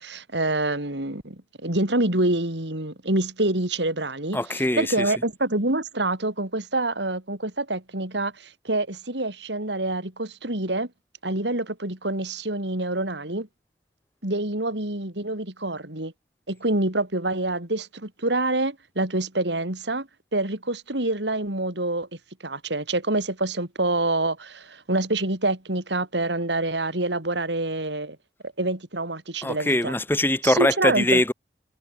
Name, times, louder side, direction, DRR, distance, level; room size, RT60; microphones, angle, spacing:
voice 1, 0.0-10.9 11.2-13.5 14.2-16.1 16.5-22.1 22.4-28.2 28.6-30.0 30.4-31.2, right 2 dB, 80° right, 4.2 m, -26 dB
voice 2, 4.3-5.0 29.4-31.3, left 1 dB, 10° left, 1.7 m, -22 dB
head